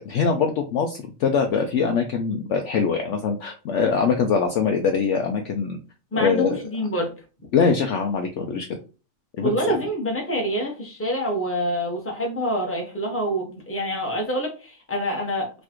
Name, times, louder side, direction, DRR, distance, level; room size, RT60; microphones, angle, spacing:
voice 1, 0.0-5.8 6.1-6.6 7.5-8.7 9.4-9.6, left 5 dB, 65° left, 4 dB, 0.8 m, -23 dB
voice 2, 6.1-7.1 9.4-15.5, equal, 10° left, 0 dB, 1.0 m, -26 dB
4.1 x 2.6 x 2.9 m, 0.33 s
omnidirectional pair, 1.5 m